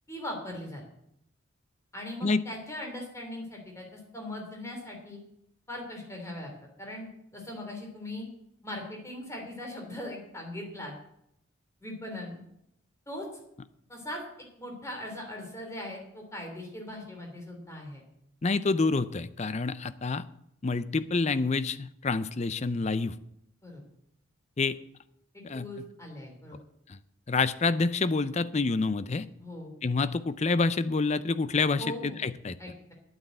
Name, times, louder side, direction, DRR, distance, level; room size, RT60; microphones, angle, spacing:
voice 1, 0.1-0.8 1.9-5.2 5.7-6.5 6.8-8.3 8.6-10.9 11.8-12.4 13.1-13.3 13.9-18.0 23.6-23.8 25.3-26.6 29.4-29.7 31.7-32.2 32.6-32.9, left 1 dB, 15° left, 1 dB, 3.1 m, -40 dB
voice 2, 18.4-20.2 20.6-23.1 24.6-24.8 25.4-25.7 26.9-27.0 27.3-29.3 29.8-32.6, left 3 dB, 35° left, 14 dB, 0.5 m, -27 dB
9.8 x 8.8 x 7.7 m, 0.77 s
head